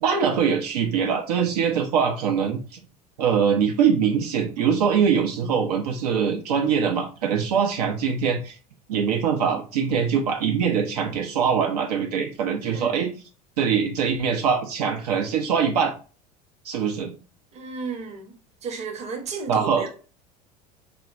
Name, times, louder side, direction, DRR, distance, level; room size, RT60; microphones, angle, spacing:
voice 1, 0.0-2.8 3.2-8.6 8.9-13.1 13.6-15.9 16.6-17.1 19.5-19.8, right 7 dB, 75° right, 0.5 m, -23 dB
voice 2, 12.6-13.0 17.5-20.0, right 4 dB, 35° right, 0.8 m, -34 dB
3.2 x 2.1 x 2.3 m
hypercardioid pair, 80°, 20 cm